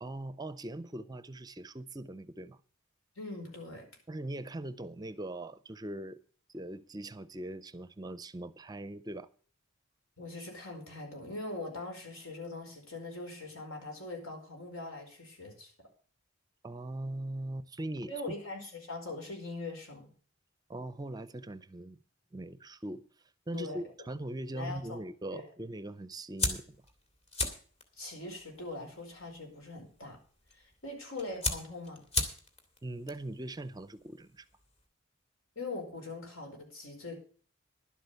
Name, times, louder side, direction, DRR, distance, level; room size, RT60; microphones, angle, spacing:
voice 1, 0.0-2.6 4.1-6.2 6.5-9.3 16.6-18.1 20.7-22.0 22.3-23.0 23.5-26.8 32.8-34.5, right 1 dB, 20° right, 0.5 m, -41 dB
voice 2, 3.1-3.8 10.2-15.7 18.1-20.1 23.5-23.8 24.5-25.0 25.3-25.5 28.0-30.2 30.5-32.0 35.5-37.2, left 2 dB, 85° left, 4.9 m, -42 dB
sound 1, 26.4-34.9, left 2 dB, 30° left, 2.1 m, -39 dB
11.5 x 8.0 x 6.7 m
head